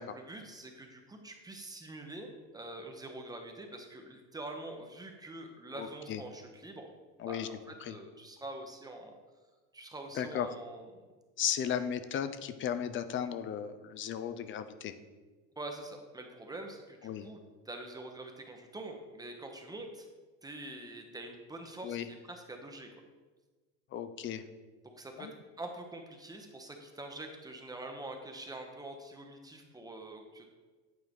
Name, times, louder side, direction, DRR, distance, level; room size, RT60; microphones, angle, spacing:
voice 1, 0.0-6.9 7.3-9.1 9.7-10.9 15.6-17.4 17.6-20.1 20.4-22.9 24.8-25.3 25.6-30.5, right 2 dB, 10° right, 3 dB, 0.9 m, -45 dB
voice 2, 5.8-6.2 7.2-7.5 7.8-8.0 10.1-10.5 11.4-14.9 17.0-17.3 21.8-22.1 23.9-24.5 25.2-25.3, left 9 dB, 40° left, 11 dB, 0.5 m, -35 dB
9.0 x 4.6 x 3.5 m, 1.3 s
supercardioid pair, 110°, 32 cm